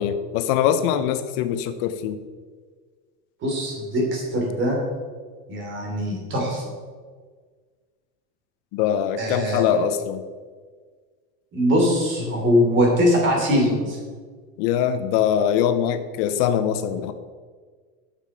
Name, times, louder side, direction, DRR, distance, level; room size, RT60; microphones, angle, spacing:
voice 1, 0.0-2.2 8.7-10.2 14.6-17.1, left 9 dB, 55° left, 10 dB, 0.7 m, -22 dB
voice 2, 3.4-4.8 5.5-6.6 9.2-9.6 11.5-14.0, equal, 35° right, 0 dB, 3.0 m, -21 dB
8.7 x 6.7 x 5.0 m, 1.5 s
supercardioid pair, 150°, 33 cm